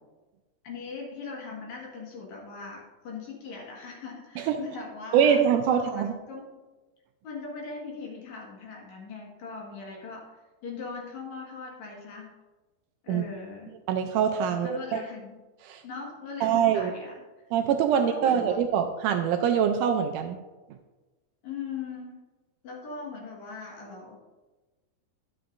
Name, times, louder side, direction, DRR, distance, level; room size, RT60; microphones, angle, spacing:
voice 1, 0.6-5.4 5.7-6.6 7.2-10.2 10.6-12.3 13.0-13.7 14.5-15.3 15.8-17.1 17.9-18.6 21.4-22.2 22.6-24.2, left 4 dB, 60° left, -2 dB, 2.7 m, -40 dB
voice 2, 5.1-6.1 13.1-13.2 13.9-15.0 15.7-15.8 16.4-16.9 17.5-20.4, right 8 dB, 80° right, 6 dB, 1.9 m, -24 dB
11.5 x 7.8 x 2.5 m, 1.2 s
omnidirectional pair, 3.9 m